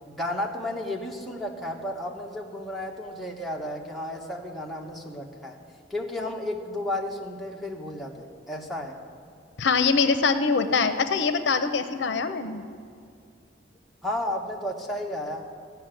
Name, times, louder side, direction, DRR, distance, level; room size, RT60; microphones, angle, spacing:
voice 1, 0.2-5.6 5.9-9.0 14.0-15.5, left 1 dB, ahead, 0 dB, 1.1 m, -33 dB
voice 2, 9.6-12.6, left 5 dB, 70° left, 10 dB, 0.6 m, -23 dB
15.5 x 5.9 x 8.9 m, 2.3 s
head